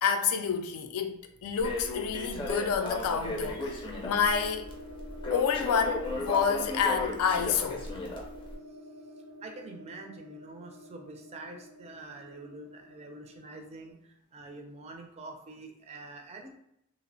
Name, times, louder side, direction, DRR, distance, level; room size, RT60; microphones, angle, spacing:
voice 1, 0.0-4.7 5.3-7.8, left 6 dB, 80° left, 0.3 m, -29 dB
Crackle, 1.6-8.5, left 2 dB, 25° left, 0.5 m, -36 dB
sound 1, 2.2-13.9, left 1 dB, 85° right, 0.5 m, -49 dB
voice 2, 9.4-16.6, right 2 dB, 30° right, 0.3 m, -46 dB
2.8 x 2.0 x 2.6 m
head